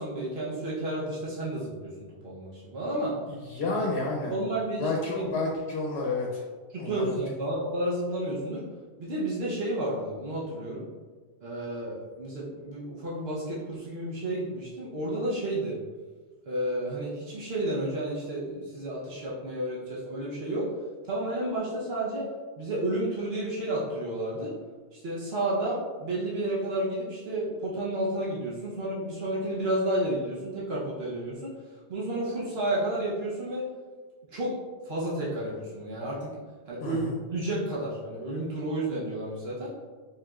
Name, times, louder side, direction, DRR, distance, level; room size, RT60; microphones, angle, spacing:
voice 1, 0.0-1.9 2.2-3.1 3.6-3.8 4.3-4.9 5.1-5.3 6.7-8.6 9.0-10.8 11.4-15.8 16.5-20.7 21.0-22.3 22.6-24.5 24.9-31.5 31.9-33.7 34.3-34.6 34.8-36.4 36.7-39.7, right 1 dB, 75° right, -6 dB, 1.0 m, -31 dB
voice 2, 3.3-4.4 4.8-6.4 6.8-7.1 36.8-37.2, left 3 dB, 85° left, -1 dB, 0.9 m, -30 dB
4.7 x 3.0 x 2.3 m, 1.4 s
omnidirectional pair, 1.1 m